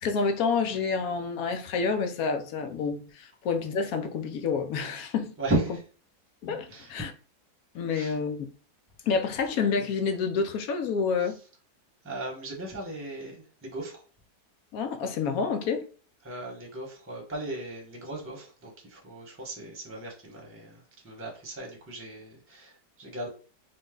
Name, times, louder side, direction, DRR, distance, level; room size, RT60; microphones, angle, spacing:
voice 1, 0.0-5.3 6.4-7.1 7.7-8.5 9.1-11.4 14.7-15.9, left 5 dB, 70° left, 1.0 m, -28 dB
voice 2, 5.4-5.8 6.7-6.9 7.9-8.2 11.2-11.3 12.0-14.0 16.2-23.3, right 2 dB, 10° right, 0.9 m, -36 dB
3.8 x 2.2 x 3.6 m
omnidirectional pair, 1.8 m